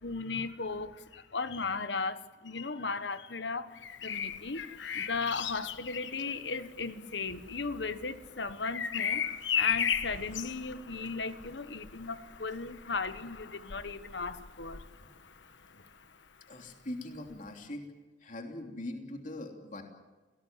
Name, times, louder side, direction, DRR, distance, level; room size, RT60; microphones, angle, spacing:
voice 1, 0.0-4.6 4.9-14.9 15.7-15.8, left 4 dB, 70° left, 12 dB, 1.4 m, -36 dB
Bird vocalization bird call bird song, 3.7-15.5 17.3-17.5, left 8 dB, 85° left, 1.3 m, -37 dB
voice 2, 16.5-17.8 18.2-19.8, left 1 dB, 45° left, 3 dB, 3.1 m, -41 dB
29.5 x 18.0 x 7.5 m, 1.2 s
head